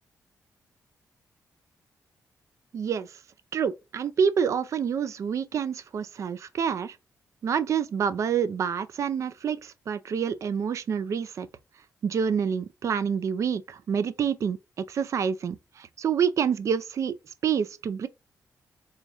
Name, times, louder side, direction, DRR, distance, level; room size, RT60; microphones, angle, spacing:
voice 1, 2.7-3.1 3.5-7.0 7.4-11.5 12.0-18.1, right 7 dB, 55° right, 0.4 m, -27 dB
3.9 x 3.0 x 2.4 m
cardioid pair, 110°, 6 cm